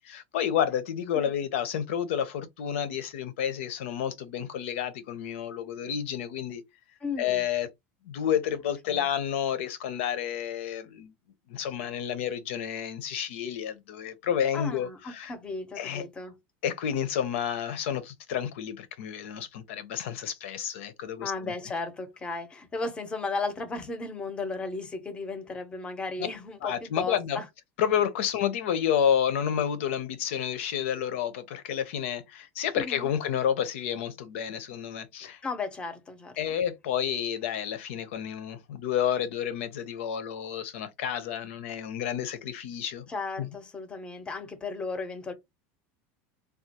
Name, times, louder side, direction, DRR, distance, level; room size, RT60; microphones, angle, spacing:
voice 1, 0.0-6.6 7.2-7.7 8.0-11.1 11.5-15.3 15.8-16.0 16.6-21.5 26.6-27.4 27.8-35.4 36.4-43.0 43.4-43.5, left 9 dB, 85° left, 0.7 m, -30 dB
voice 2, 7.0-7.5 8.9-9.1 14.5-16.4 21.2-27.4 32.8-33.1 35.4-36.4 43.1-45.3, left 3 dB, 15° left, 0.6 m, -35 dB
3.6 x 2.4 x 2.8 m
supercardioid pair, 160°, 7 cm